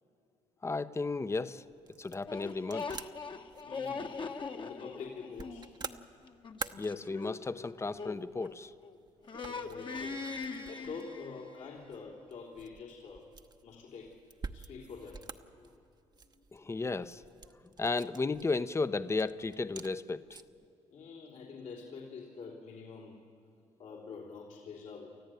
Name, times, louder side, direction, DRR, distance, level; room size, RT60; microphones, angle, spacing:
voice 1, 0.6-1.6 2.0-2.9 6.8-8.7 16.5-17.2 17.8-20.4, left 3 dB, 20° left, 13 dB, 0.8 m, -34 dB
sound 1, 1.1-20.7, right 4 dB, 35° right, 1.0 m, -50 dB
sound 2, 2.3-8.9 9.2-11.7, left 4 dB, 40° left, 1.3 m, -41 dB
voice 2, 3.6-5.7 9.4-10.3 10.6-13.2 13.6-14.2 14.5-15.3 20.9-23.2 23.8-25.2, left 5 dB, 70° left, -4 dB, 3.3 m, -46 dB
29.0 x 14.5 x 9.2 m, 2.6 s
supercardioid pair, 70°, 13 cm